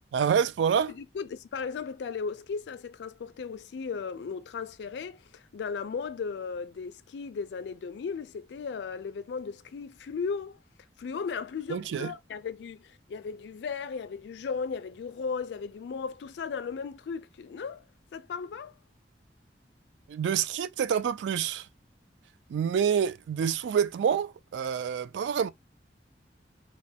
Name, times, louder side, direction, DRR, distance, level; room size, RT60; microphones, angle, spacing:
voice 1, 0.1-0.9 11.7-12.1 20.1-21.7 22.5-25.5, right 7 dB, 85° right, 0.3 m, -27 dB
voice 2, 0.9-10.6 11.0-17.8 18.1-18.7, left 5 dB, 70° left, 0.3 m, -36 dB
3.0 x 2.1 x 2.7 m
head